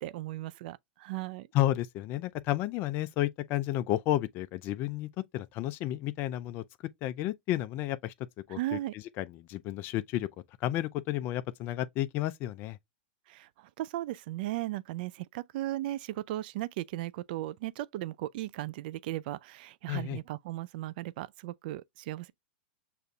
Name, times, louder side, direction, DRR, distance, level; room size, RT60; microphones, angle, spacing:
voice 1, 0.0-1.5 8.5-8.9 13.3-22.3, right 15 dB, 60° right, 0.4 m, -36 dB
voice 2, 1.5-6.6 7.0-8.1 8.5-10.3 10.6-12.8 19.9-20.2, left 14 dB, 40° left, 0.4 m, -32 dB
6.7 x 2.5 x 2.3 m
hypercardioid pair, 115°, 6 cm